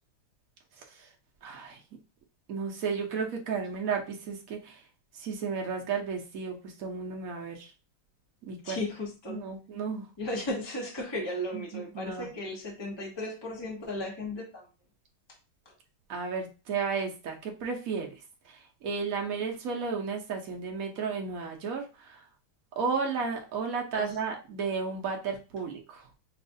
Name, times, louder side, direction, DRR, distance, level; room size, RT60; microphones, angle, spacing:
voice 1, 1.4-1.8 2.5-4.8 5.1-7.7 8.5-8.8 9.3-10.1 11.5-12.3 16.1-18.1 18.4-22.2 22.8-26.1, right 5 dB, 55° right, 1 dB, 1.1 m, -33 dB
voice 2, 8.6-9.4 10.2-14.6 15.6-15.7 23.9-24.1, left 1 dB, 20° left, -1 dB, 0.6 m, -35 dB
5.6 x 2.6 x 2.7 m, 0.32 s
omnidirectional pair, 2.3 m